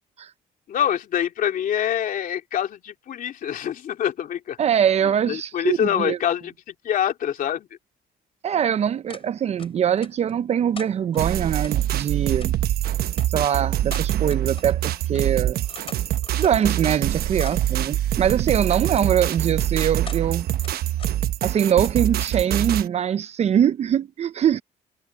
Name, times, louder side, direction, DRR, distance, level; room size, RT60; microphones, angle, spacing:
voice 1, 0.7-4.6 5.3-7.7, left 10 dB, 60° left, 3.2 m, -25 dB
voice 2, 4.6-6.2 8.4-12.6 13.3-15.6 16.4-20.5 21.4-24.6, right 9 dB, 45° right, 0.5 m, -23 dB
sound 1, 9.1-9.3 9.6-10.3 10.7-11.8 12.4-12.5 13.1-13.3 13.9-14.9 15.1-15.2 15.5-16.7 17.0-17.7 18.9-19.4 19.9-20.3 20.6-21.1 21.4-22.4, left 6 dB, 35° left, 6.9 m, -42 dB
sound 2, 11.2-22.9, right 12 dB, 75° right, 1.0 m, -25 dB
cardioid pair, 120°, 16 cm